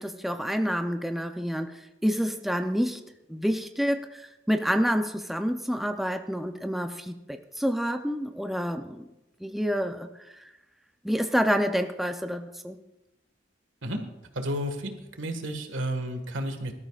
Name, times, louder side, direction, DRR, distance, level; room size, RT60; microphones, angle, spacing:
voice 1, 0.0-1.7 2.0-3.0 3.3-4.2 4.5-7.2 7.6-9.0 9.4-10.1 11.0-12.8, equal, ahead, 6 dB, 0.6 m, -28 dB
voice 2, 14.3-16.7, equal, 85° right, 6 dB, 1.7 m, -32 dB
21.5 x 13.0 x 2.4 m, 0.95 s
head